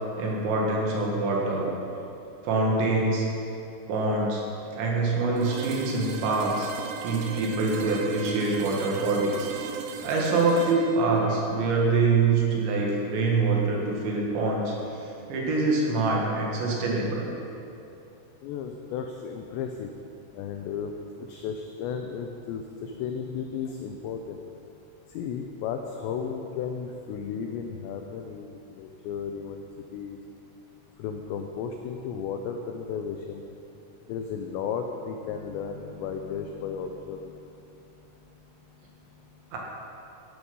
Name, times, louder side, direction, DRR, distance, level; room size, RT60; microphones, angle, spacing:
voice 1, 0.2-1.7 2.4-3.3 3.9-4.4 4.7-6.7 7.0-9.5 10.0-14.7 15.3-17.3 39.5-39.6, right 3 dB, 65° right, -2 dB, 3.9 m, -25 dB
sound 1, 5.4-13.2, right 7 dB, 90° right, 3.4 m, -38 dB
voice 2, 18.4-19.9 20.3-20.9 21.2-24.4 25.1-29.6 29.9-30.2 31.0-33.4 34.1-37.4, left 7 dB, 90° left, 4 dB, 2.5 m, -34 dB
15.5 x 11.0 x 5.5 m, 2.7 s
omnidirectional pair, 6.0 m